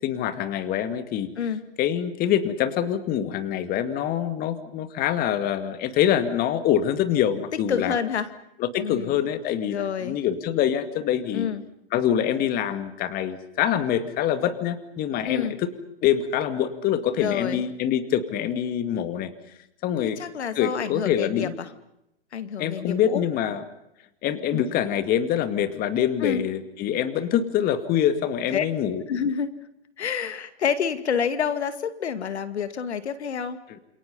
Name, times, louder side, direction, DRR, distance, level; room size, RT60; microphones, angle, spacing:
voice 1, 0.0-1.3 1.8-7.9 8.6-11.5 11.9-15.7 16.0-19.3 19.8-20.2 20.6-21.5 22.6-23.6 24.2-29.0, left 10 dB, 25° left, 10 dB, 2.2 m, -25 dB
voice 2, 7.7-8.3 8.8-9.1 9.7-10.2 11.3-11.6 15.3-15.5 17.2-17.6 20.0-21.7 22.3-23.2 24.5-24.6 26.2-26.4 28.5-28.7 29.1-29.5 30.0-33.6, left 7 dB, 75° left, 12 dB, 2.4 m, -28 dB
29.5 x 28.0 x 5.6 m, 0.84 s
hypercardioid pair, 130°, 34 cm